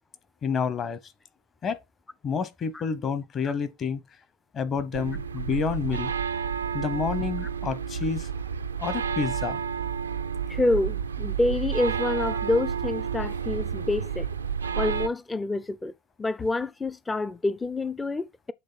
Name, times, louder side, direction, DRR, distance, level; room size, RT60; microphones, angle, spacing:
voice 1, 0.4-1.0 1.6-1.8 2.2-4.0 4.5-6.1 6.7-8.3 8.8-9.6, left 6 dB, 35° left, 1.0 m, -29 dB
sound 1, 4.9-15.1, right 7 dB, 90° right, 0.4 m, -30 dB
voice 2, 10.5-14.3 14.8-15.9 16.2-18.5, left 2 dB, 15° left, 0.4 m, -27 dB
8.0 x 3.2 x 4.0 m
hypercardioid pair, 85°, 0 cm